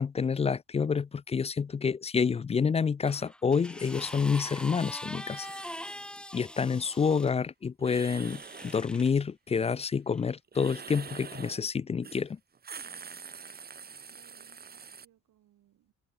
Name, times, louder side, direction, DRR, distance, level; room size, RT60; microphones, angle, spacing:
voice 1, 0.0-5.5 6.3-12.4, left 6 dB, 20° left, 0.3 m, -28 dB
sound 1, 3.0-7.3 8.2-9.2 10.1-10.3, left 1 dB, 5° left, 0.8 m, -43 dB
sound 2, 4.2-4.5 5.1-6.0 7.8-8.8 10.5-11.6 12.0-12.3 12.5-15.1, right 6 dB, 30° right, 1.1 m, -46 dB
voice 2, 14.1-15.9, right 13 dB, 80° right, 6.4 m, -65 dB
cardioid pair, 90°, 30 cm